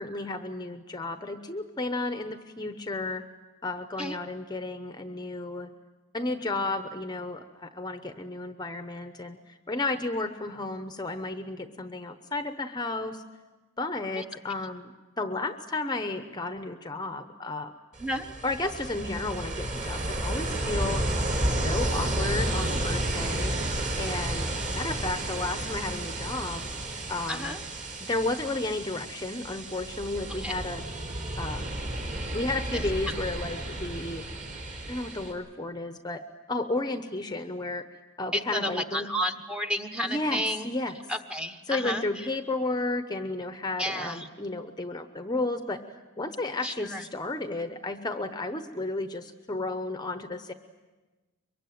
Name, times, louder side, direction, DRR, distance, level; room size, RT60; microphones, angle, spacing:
voice 1, 0.0-3.2 3.6-5.7 6.1-13.2 13.8-17.7 18.4-21.0 21.6-23.5 24.0-26.7 27.1-27.6 28.1-30.8 31.4-31.6 32.3-34.2 34.9-36.2 36.5-37.8 38.2-39.1 40.0-40.9 41.7-45.8 46.2-50.5, left 2 dB, 20° left, 8 dB, 0.9 m, -33 dB
Ocean, 17.9-35.3, right 1 dB, 35° right, 4.6 m, -32 dB
voice 2, 18.0-18.3 27.3-27.6 30.4-30.6 32.7-32.9 38.3-40.7 41.1-42.0 43.8-44.3 46.6-47.1, equal, 5° right, 7 dB, 1.1 m, -31 dB
23.5 x 23.0 x 9.3 m, 1.2 s
head